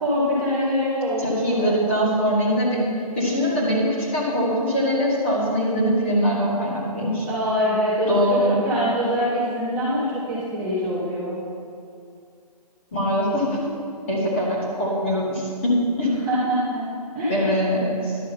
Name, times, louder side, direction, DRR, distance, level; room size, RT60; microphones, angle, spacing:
voice 1, 0.0-1.7 7.3-11.4 16.3-16.8 17.1-17.6, equal, 5° right, -14 dB, 1.1 m, -24 dB
voice 2, 1.2-2.8 3.2-7.3 8.1-8.6 12.9-13.7 14.1-16.1 17.3-18.2, equal, 20° left, -6 dB, 2.0 m, -22 dB
11.5 x 6.4 x 6.7 m, 2.4 s
hypercardioid pair, 180°, 21 cm